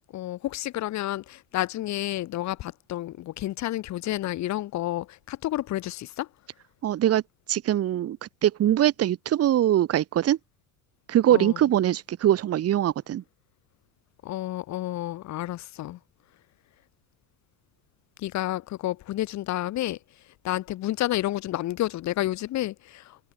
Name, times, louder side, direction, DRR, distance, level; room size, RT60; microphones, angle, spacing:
voice 1, 0.1-6.3 11.3-11.6 14.2-16.0 18.2-20.0 20.4-23.2, left 15 dB, 50° left, 2.5 m, -30 dB
voice 2, 6.8-7.2 7.5-10.4 11.1-13.2, right 12 dB, 40° right, 2.1 m, -22 dB
hypercardioid pair, 85°, 36 cm